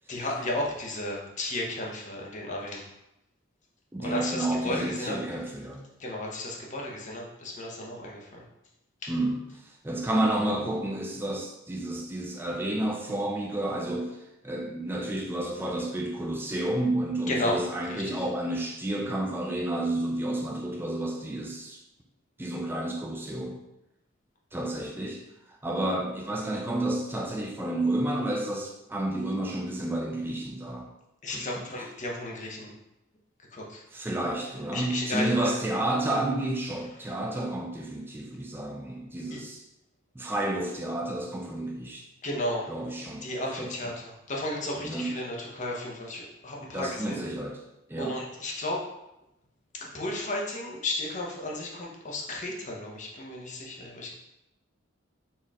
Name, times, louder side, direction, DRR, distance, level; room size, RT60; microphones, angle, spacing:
voice 1, 0.1-2.9 4.0-5.2 6.0-8.4 9.0-9.1 17.3-17.6 17.9-18.3 31.2-32.7 33.5-33.8 34.7-35.5 39.3-39.4 42.2-42.7 43.2-47.2 48.0-48.8 49.8-54.1, left 1 dB, 40° left, -2 dB, 0.9 m, -33 dB
voice 2, 3.9-5.8 9.1-14.2 14.4-21.8 22.4-23.6 24.5-30.9 31.3-31.6 33.9-39.6 40.1-42.1 42.7-43.3 43.6-43.7 44.8-45.1 46.7-47.6 47.9-48.2, right 1 dB, 10° right, 0 dB, 0.4 m, -30 dB
4.4 x 3.0 x 3.6 m, 0.88 s
head